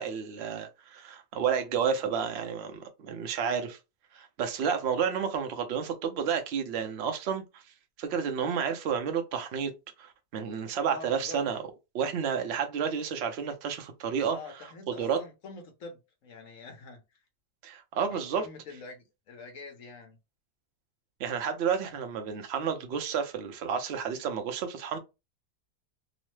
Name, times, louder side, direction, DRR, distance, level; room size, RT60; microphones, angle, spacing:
voice 1, 0.0-3.8 4.1-7.6 8.0-9.7 10.0-11.6 11.9-14.4 15.0-15.2 17.6-18.5 21.2-25.0, right 7 dB, 60° right, 0.7 m, -31 dB
voice 2, 10.7-11.4 14.2-17.0 18.1-20.2, left 3 dB, 60° left, 1.1 m, -45 dB
3.0 x 2.0 x 3.1 m
omnidirectional pair, 1.7 m